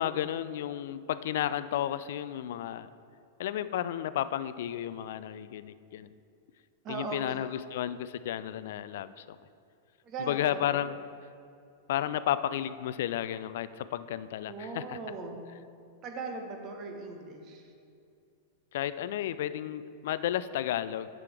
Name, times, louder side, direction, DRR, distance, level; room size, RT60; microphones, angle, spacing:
voice 1, 0.0-2.9 3.4-6.1 6.9-9.4 10.2-11.0 11.9-15.0 18.7-21.1, left 11 dB, 60° left, 15 dB, 0.3 m, -32 dB
voice 2, 6.8-7.4 10.0-10.8 14.5-15.5 16.0-17.6, right 3 dB, 35° right, 3 dB, 1.2 m, -39 dB
9.8 x 7.5 x 3.4 m, 2.5 s
figure-of-eight pair, 95°, 0 cm